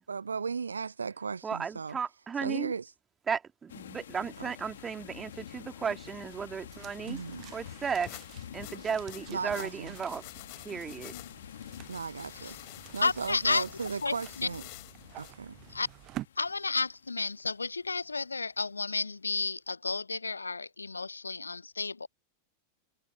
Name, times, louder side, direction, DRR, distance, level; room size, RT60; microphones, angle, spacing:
voice 1, 0.1-2.0 2.4-2.9 4.4-4.5 7.1-7.5 9.3-10.0 11.9-12.6 12.9-14.6 15.1-15.6, right 5 dB, 75° right, 0.5 m, -36 dB
voice 2, 1.4-2.7 3.3-7.2 7.5-8.1 8.5-10.2 10.6-11.1, right 6 dB, 20° right, 2.3 m, -35 dB
sound 1, 3.7-18.3, left 10 dB, 65° left, 2.1 m, -48 dB
sound 2, 6.0-16.3, right 15 dB, 35° right, 0.9 m, -50 dB
sound 3, 8.0-15.3, left 40 dB or more, 45° left, 3.1 m, -49 dB
voice 3, 13.0-13.6 14.0-14.5 15.7-15.9 16.4-22.1, left 4 dB, 80° left, 0.4 m, -32 dB
figure-of-eight pair, 90°, 0 cm